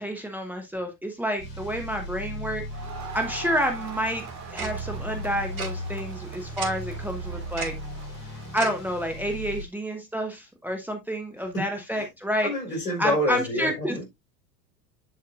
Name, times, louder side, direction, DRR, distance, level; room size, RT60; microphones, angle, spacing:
voice 1, 0.0-2.6 3.1-4.2 4.5-7.8 8.5-12.5 13.0-14.0, equal, 5° right, 1.4 m, -29 dB
sound 1, 1.4-9.6, equal, 40° left, 3.1 m, -37 dB
Crowd, 2.7-9.2, right 5 dB, 35° right, 2.1 m, -43 dB
Tick-tock, 4.6-4.7 5.6-5.7 6.6-6.7 7.6-7.7 8.6-8.7, right 4 dB, 60° right, 3.6 m, -32 dB
voice 2, 12.4-14.1, equal, 75° left, 4.6 m, -27 dB
11.0 x 4.6 x 2.4 m
figure-of-eight pair, 80°, 49 cm